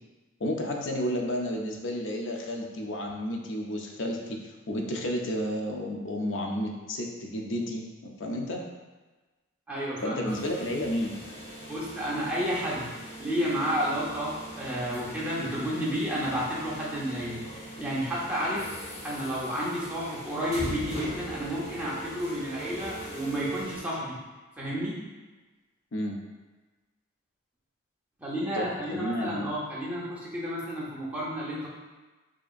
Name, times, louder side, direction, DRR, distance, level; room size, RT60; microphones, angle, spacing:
voice 1, 0.4-8.6 10.0-11.2 25.9-26.1 28.6-29.5, equal, 65° left, 1 dB, 0.5 m, -31 dB
voice 2, 9.7-10.3 11.7-18.7 19.0-24.2 24.6-25.0 28.2-31.7, equal, 5° right, -7 dB, 0.7 m, -31 dB
sound 1, 10.3-23.8, right 1 dB, 30° left, 0.9 m, -41 dB
4.9 x 2.8 x 2.5 m, 1.2 s
head